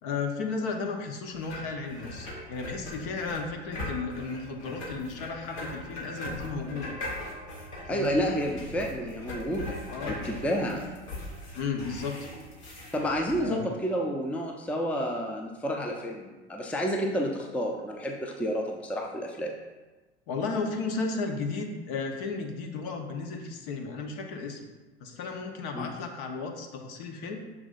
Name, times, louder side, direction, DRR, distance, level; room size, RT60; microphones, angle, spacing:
voice 1, 0.0-7.0 7.9-8.2 9.9-10.6 11.5-12.2 13.4-13.7 20.3-24.6 25.0-27.4, left 4 dB, 50° left, 4 dB, 1.0 m, -34 dB
sound 1, 1.3-13.4, left 1 dB, 70° left, 1.9 m, -40 dB
voice 2, 7.9-9.8 10.1-10.9 12.9-19.5 25.7-25.9, equal, 5° left, 1 dB, 0.6 m, -30 dB
6.5 x 6.0 x 2.6 m, 1.2 s
figure-of-eight pair, 85°, 34 cm